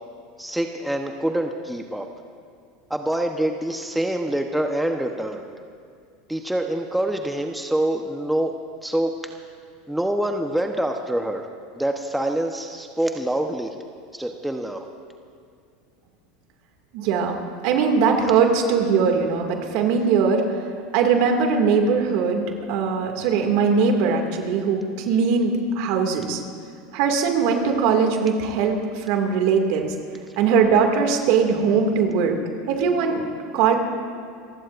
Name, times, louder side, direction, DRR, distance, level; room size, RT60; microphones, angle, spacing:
voice 1, 0.4-2.1 2.9-5.5 6.3-8.5 8.8-9.1 9.9-11.5 11.7-13.7 14.1-14.8, right 1 dB, 5° right, 4 dB, 1.0 m, -25 dB
voice 2, 16.9-17.4 17.6-20.4 20.9-26.4 26.9-29.9 30.4-32.4 32.7-33.2 33.5-33.8, right 5 dB, 65° right, 3 dB, 2.3 m, -20 dB
28.5 x 15.5 x 2.6 m, 2.3 s
hypercardioid pair, 100°, 0 cm